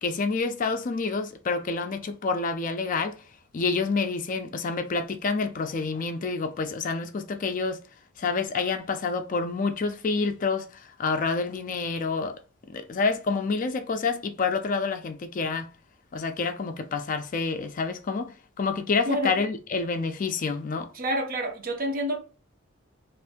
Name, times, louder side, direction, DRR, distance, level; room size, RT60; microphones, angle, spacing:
voice 1, 0.0-3.2 3.5-7.8 8.2-12.4 12.7-15.7 16.1-20.9, left 4 dB, 40° left, 0.4 m, -28 dB
voice 2, 19.1-19.4 20.9-22.2, right 1 dB, 45° right, 0.6 m, -28 dB
2.6 x 2.5 x 3.4 m
head